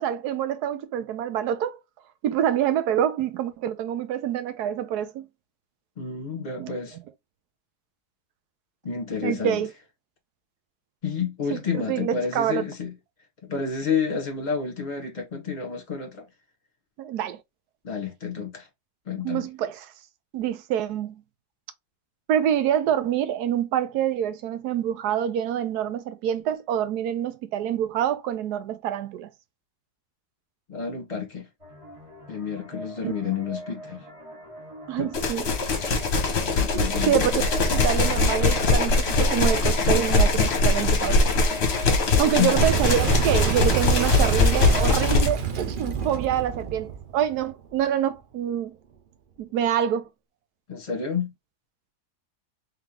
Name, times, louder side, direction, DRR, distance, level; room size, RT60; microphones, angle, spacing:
voice 1, 0.0-1.8 2.2-5.3 6.6-6.7 9.2-9.7 11.5-12.6 17.0-17.4 19.2-19.9 20.3-21.2 22.3-29.3 33.0-33.1 34.9-35.5 36.7-37.4 37.7-41.2 42.2-48.8 49.4-50.1, right 10 dB, 80° right, 1.2 m, -26 dB
voice 2, 6.0-7.0 8.8-9.6 11.0-12.9 13.4-16.2 17.8-18.7 19.0-19.5 30.7-31.5 32.3-34.0 35.0-35.1 36.6-37.2 42.4-42.5 50.7-51.3, left 6 dB, 30° left, 1.4 m, -29 dB
sound 1, 31.6-45.4, equal, 20° right, 1.7 m, -43 dB
sound 2, 35.1-45.3, left 3 dB, 50° left, 1.1 m, -22 dB
Boom, 42.6-47.8, right 6 dB, 50° right, 0.6 m, -27 dB
3.5 x 3.5 x 2.9 m
omnidirectional pair, 1.7 m